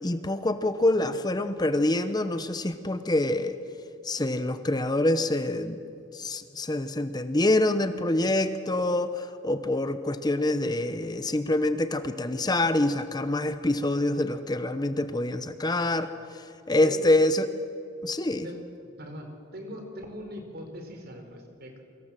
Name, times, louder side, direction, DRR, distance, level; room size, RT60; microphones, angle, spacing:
voice 1, 0.0-3.6 4.0-5.8 6.1-16.1 16.7-17.5 18.0-18.5, left 1 dB, 20° left, 10 dB, 0.9 m, -26 dB
voice 2, 16.8-17.2 18.4-18.6 19.0-21.8, equal, 50° right, 5 dB, 4.5 m, -41 dB
28.5 x 24.5 x 7.6 m, 2.7 s
head